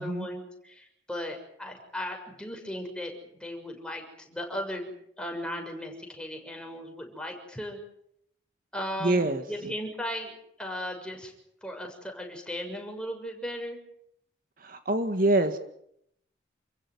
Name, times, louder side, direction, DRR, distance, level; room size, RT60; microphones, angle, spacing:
voice 1, 0.0-7.8 8.7-11.3 11.6-13.8, equal, 5° left, 2 dB, 6.6 m, -37 dB
voice 2, 9.0-9.4 14.6-15.6, right 2 dB, 50° right, 8 dB, 1.8 m, -25 dB
29.5 x 15.5 x 9.8 m, 0.73 s
head